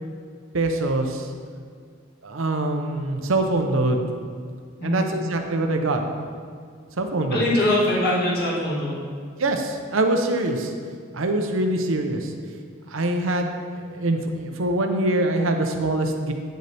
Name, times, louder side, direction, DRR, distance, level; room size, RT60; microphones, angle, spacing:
voice 1, 0.5-1.3 2.2-4.0 4.8-6.0 7.0-7.4 9.4-10.7 11.1-12.3 12.9-16.3, right 2 dB, 75° right, 5 dB, 0.7 m, -24 dB
voice 2, 7.3-9.0, left 1 dB, 50° left, -6 dB, 1.9 m, -22 dB
9.1 x 6.7 x 3.4 m, 2.1 s
head